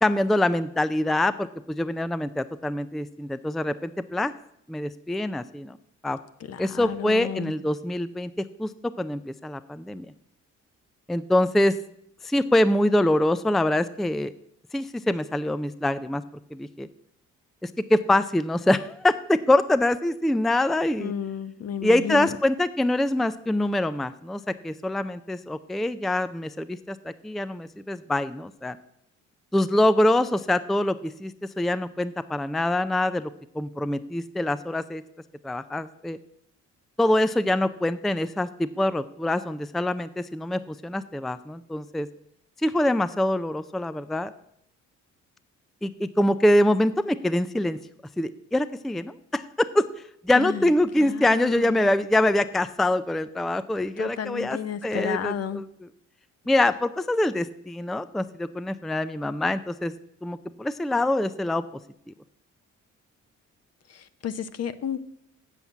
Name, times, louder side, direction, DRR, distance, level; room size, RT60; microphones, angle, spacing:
voice 1, 0.0-4.3 4.7-5.8 6.0-6.2 6.6-8.3 8.6-8.7 9.0-10.1 11.1-11.8 12.2-14.3 14.7-16.2 16.5-16.9 17.6-21.1 21.8-28.8 29.5-35.0 35.4-36.2 37.0-42.1 42.6-44.3 45.8-47.8 48.2-49.9 50.2-55.9 56.5-59.9 60.2-61.6, left 1 dB, ahead, 13 dB, 0.4 m, -24 dB
voice 2, 6.5-7.5 21.0-22.3 50.4-50.6 51.0-51.9 54.0-55.6 63.9-65.0, left 8 dB, 55° left, 12 dB, 0.9 m, -32 dB
7.7 x 7.3 x 8.2 m, 0.72 s
cardioid pair, 90°, 30 cm